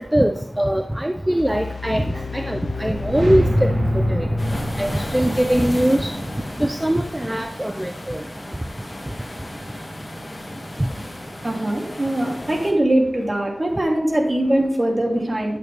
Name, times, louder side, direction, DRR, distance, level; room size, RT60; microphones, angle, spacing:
voice 1, 0.1-2.0 2.3-4.3 4.8-6.1 6.6-8.2, right 1 dB, 10° right, 7 dB, 0.5 m, -21 dB
sound 1, 1.4-4.4, left 4 dB, 60° left, 0.6 m, -33 dB
sound 2, 2.7-7.6, equal, 70° right, 2.1 m, -25 dB
sound 3, 4.4-12.7, left 1 dB, 35° left, 2.1 m, -34 dB
voice 2, 11.4-15.6, right 1 dB, 35° right, 0 dB, 2.3 m, -21 dB
11.0 x 7.9 x 3.4 m, 0.71 s
wide cardioid pair, 70°, 0 cm